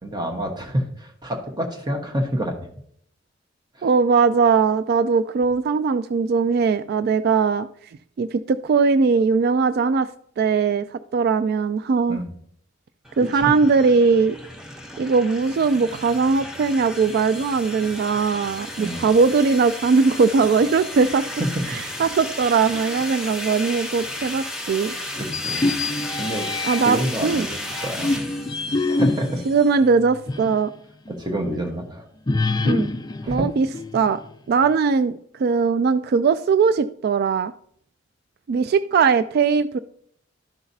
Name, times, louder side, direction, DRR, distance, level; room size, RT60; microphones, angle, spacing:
voice 1, 0.0-2.5 3.7-3.9 12.1-12.3 13.3-13.5 18.8-19.1 21.4-21.8 25.2-25.7 26.2-26.5 26.8-28.3 28.9-29.4 31.1-32.1 33.2-33.4, equal, 20° right, 2 dB, 1.2 m, -28 dB
voice 2, 3.8-7.7 8.2-10.1 10.4-12.2 13.2-14.4 15.0-21.3 22.0-24.9 26.6-27.5 29.5-30.7 32.6-32.9 33.3-33.7 33.9-34.2 34.5-37.5 38.5-39.8, right 5 dB, 55° right, 13 dB, 0.3 m, -20 dB
sound 1, 13.0-29.8, left 1 dB, 5° right, 0.7 m, -34 dB
sound 2, 25.3-27.1 27.7-30.7 31.1-31.2 32.3-34.3, left 2 dB, 20° left, 0.4 m, -26 dB
12.5 x 5.8 x 2.7 m, 0.65 s
head